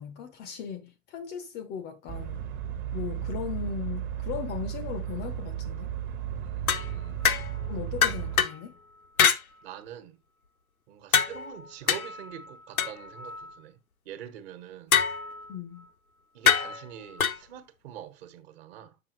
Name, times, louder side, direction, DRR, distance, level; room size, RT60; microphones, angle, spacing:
voice 1, 0.0-2.4 2.9-5.9 7.7-8.8 15.5-15.9, left 8 dB, 25° left, 0.6 m, -37 dB
sound 1, 2.1-8.4, right 10 dB, 25° right, 1.0 m, -34 dB
voice 2, 6.3-7.2 9.6-10.2 10.9-13.8 14.0-15.0 16.3-18.9, right 10 dB, 45° right, 1.4 m, -44 dB
sound 2, 6.7-7.7 8.0-8.6 9.2-9.4 11.1-13.6 14.9-15.5 16.5-17.4, left 7 dB, 80° left, 0.8 m, -26 dB
7.5 x 6.0 x 3.0 m
figure-of-eight pair, 100°, 42 cm